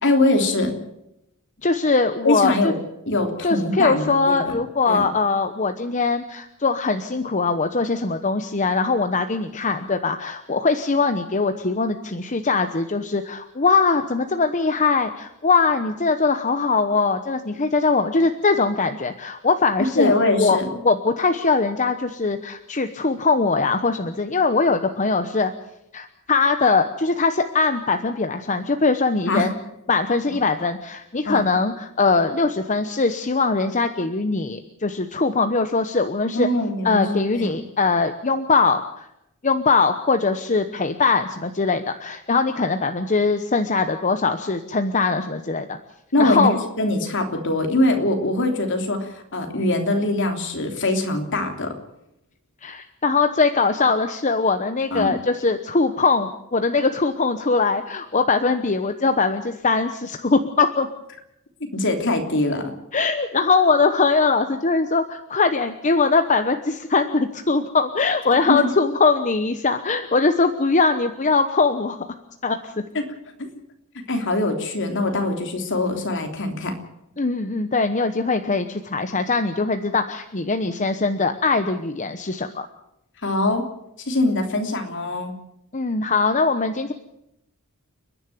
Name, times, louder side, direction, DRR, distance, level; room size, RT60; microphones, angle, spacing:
voice 1, 0.0-0.8 2.2-2.8 3.1-4.6 4.9-5.1 19.8-20.6 29.3-29.5 30.3-30.4 31.2-31.4 36.2-37.6 46.1-51.7 54.9-55.2 61.7-62.6 68.5-68.6 72.9-73.0 73.4-73.5 74.1-76.7 83.2-83.6 84.0-85.3, left 2 dB, 60° left, 4 dB, 3.3 m, -22 dB
voice 2, 1.6-2.7 3.4-25.5 25.9-29.5 29.9-36.5 36.8-39.1 39.4-45.8 46.2-46.6 52.6-60.9 62.9-72.1 72.4-72.7 77.2-82.7 85.7-86.9, left 4 dB, 35° left, 8 dB, 1.0 m, -21 dB
30.0 x 10.5 x 9.3 m, 0.84 s
head